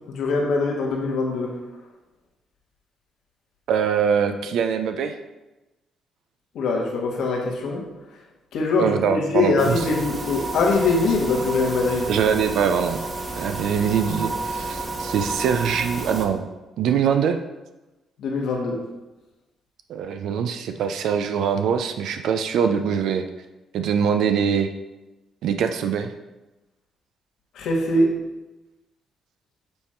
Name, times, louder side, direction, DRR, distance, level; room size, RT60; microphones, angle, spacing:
voice 1, 0.1-1.6 6.5-7.8 8.5-12.1 18.2-18.8 27.5-28.2, left 3 dB, 80° left, -1 dB, 1.4 m, -22 dB
voice 2, 3.7-5.2 8.8-9.8 12.1-13.0 13.4-16.5 16.8-17.4 19.9-23.2 23.7-24.7 25.4-26.1, right 7 dB, 80° right, 7 dB, 0.4 m, -23 dB
sound 1, 9.6-16.3, right 2 dB, 30° right, 1.1 m, -31 dB
6.9 x 3.6 x 4.3 m, 1.1 s
cardioid pair, 90°, 0 cm